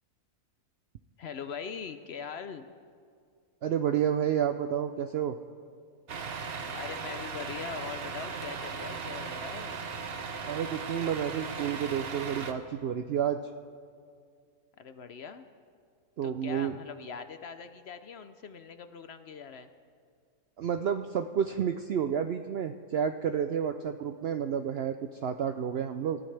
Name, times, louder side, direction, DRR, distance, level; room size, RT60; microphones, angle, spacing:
voice 1, 1.2-2.7 6.7-9.8 14.8-15.4 16.2-19.7, left 6 dB, 60° left, 9 dB, 0.7 m, -41 dB
voice 2, 3.6-5.4 10.5-13.4 16.2-16.8 20.6-26.2, right 8 dB, 85° right, 8 dB, 0.5 m, -30 dB
Truck, 6.1-12.5, right 5 dB, 45° right, 0.9 m, -37 dB
26.5 x 14.0 x 3.3 m, 2.2 s
omnidirectional pair, 1.6 m